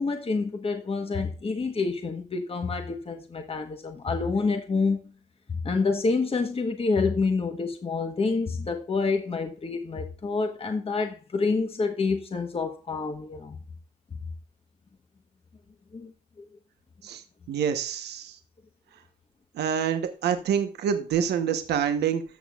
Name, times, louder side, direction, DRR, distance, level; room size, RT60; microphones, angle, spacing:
voice 1, 0.0-5.1 5.5-13.6 15.9-16.1 16.4-16.5, left 4 dB, 35° left, 1.3 m, -28 dB
voice 2, 17.0-18.4 19.5-22.2, right 8 dB, 90° right, 1.1 m, -27 dB
14.0 x 6.3 x 2.4 m
cardioid pair, 75°, 17 cm